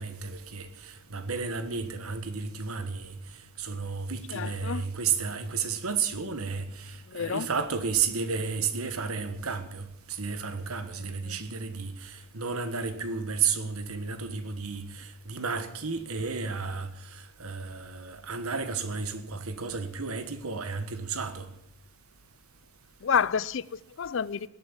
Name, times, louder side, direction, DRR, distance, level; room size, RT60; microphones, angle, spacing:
voice 1, 0.0-3.2 3.6-21.5, right 5 dB, 80° right, 1.5 m, -32 dB
voice 2, 4.3-4.9 7.1-7.5 11.0-11.4 23.0-24.5, left 7 dB, 60° left, 0.5 m, -30 dB
19.5 x 8.5 x 7.3 m
head